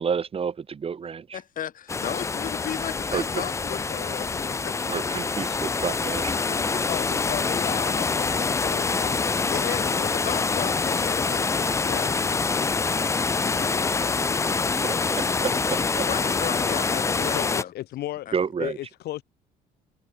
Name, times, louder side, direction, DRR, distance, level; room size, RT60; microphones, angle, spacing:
voice 1, 0.0-1.4 3.1-3.2 4.9-6.3 14.8-16.1 18.3-18.8, right 6 dB, 35° right, 2.0 m, -30 dB
voice 2, 1.3-4.8 6.3-6.9 9.5-11.8 16.1-17.7 18.3-18.4, left 10 dB, 55° left, 7.8 m, -35 dB
sound 1, 1.9-17.6, left 4 dB, 15° left, 0.4 m, -25 dB
voice 3, 6.9-10.1 11.8-12.8 13.1-14.8 15.4-15.6 17.2-18.3 18.6-19.2, left 14 dB, 70° left, 2.2 m, -37 dB
cardioid pair, 110°, 17 cm